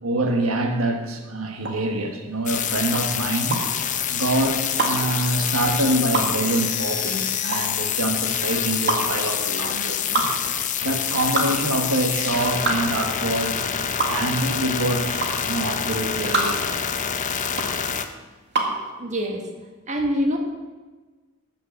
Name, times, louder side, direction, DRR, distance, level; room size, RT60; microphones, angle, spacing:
voice 1, 0.0-3.6 4.1-10.3 10.8-13.6 14.1-16.8, right 2 dB, 85° right, 4 dB, 1.5 m, -25 dB
sound 1, 1.6-18.8, right 3 dB, 55° right, 1.9 m, -28 dB
sound 2, 2.5-18.0, left 8 dB, 35° left, 0.7 m, -26 dB
voice 2, 19.0-19.4 19.9-20.4, equal, 35° right, 2 dB, 1.5 m, -24 dB
13.0 x 6.7 x 7.6 m, 1.3 s
head